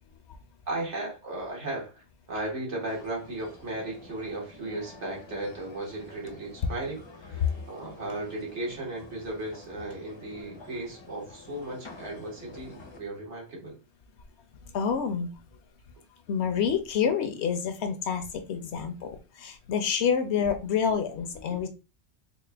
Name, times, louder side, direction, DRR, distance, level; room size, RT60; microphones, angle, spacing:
voice 1, 0.7-13.8, right 2 dB, 80° right, -2 dB, 1.6 m, -36 dB
sound 1, 2.9-13.0, left 3 dB, 35° left, 0.5 m, -49 dB
voice 2, 14.6-15.3 16.3-21.7, left 7 dB, 75° left, 8 dB, 0.9 m, -28 dB
4.1 x 2.2 x 3.3 m, 0.30 s
omnidirectional pair, 1.2 m